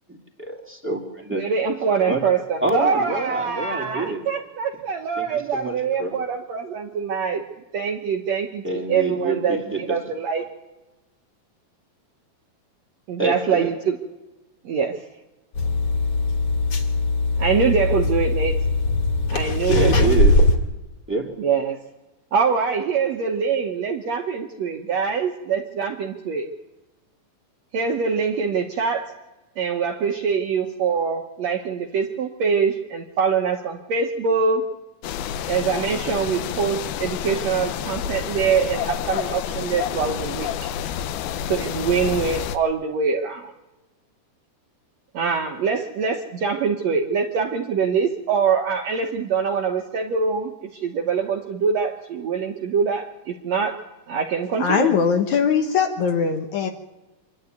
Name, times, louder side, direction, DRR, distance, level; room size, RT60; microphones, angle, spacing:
voice 1, 0.4-1.4 2.1-2.2 2.6-4.2 5.2-6.1 8.6-10.0 10.4-10.5 13.2-13.7 19.5-20.3 21.1-21.3, right 2 dB, 5° right, 1 dB, 1.9 m, -26 dB
voice 2, 1.4-7.4 7.7-10.4 13.1-14.0 14.7-15.0 17.4-18.6 19.3-20.3 21.4-21.8 22.3-26.5 27.7-29.1 29.6-34.6 35.5-40.7 41.5-43.5 45.1-50.5 50.8-53.8 54.1-54.9, right 6 dB, 65° right, 3 dB, 1.8 m, -24 dB
sound 1, 15.5-20.6, left 2 dB, 40° left, 3.0 m, -20 dB
sound 2, 35.0-42.6, left 10 dB, 85° left, 2.7 m, -29 dB
voice 3, 54.6-56.7, left 6 dB, 65° left, 5 dB, 2.1 m, -21 dB
25.0 x 11.5 x 9.2 m, 1.1 s
omnidirectional pair, 4.2 m